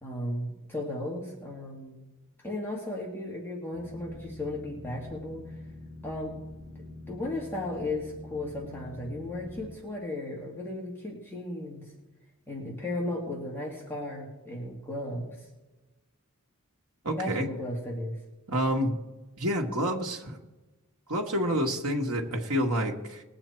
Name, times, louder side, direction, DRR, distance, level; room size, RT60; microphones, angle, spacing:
voice 1, 0.0-2.0 2.4-5.6 6.0-6.4 6.8-11.8 12.5-15.4 17.2-18.2, left 1 dB, 10° left, -3 dB, 2.1 m, -35 dB
Boat Water vehicle, 3.7-9.7, left 2 dB, 70° left, 1.9 m, -45 dB
voice 2, 17.0-17.5 18.5-19.0 19.4-20.4 21.1-23.2, equal, 90° right, 0 dB, 1.4 m, -28 dB
20.5 x 8.2 x 4.4 m, 1.1 s
head